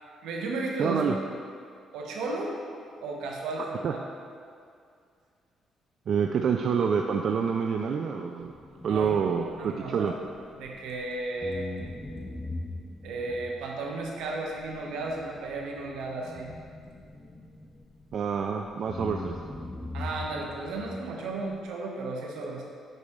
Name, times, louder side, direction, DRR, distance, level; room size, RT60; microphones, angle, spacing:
voice 1, 0.2-1.0 1.9-2.6 3.0-4.0 8.9-9.2 9.6-10.1 10.6-11.7 13.0-16.5 19.9-22.7, right 2 dB, 90° right, 0 dB, 1.0 m, -34 dB
voice 2, 0.8-1.1 3.6-3.9 6.1-8.5 8.8-10.1 18.1-19.3, right 6 dB, 60° right, 4 dB, 0.3 m, -27 dB
sound 1, 8.4-11.0 11.4-18.5 18.9-21.7, left 2 dB, 15° left, 0.6 m, -41 dB
10.0 x 4.2 x 3.6 m, 2.3 s
cardioid pair, 90°, 0 cm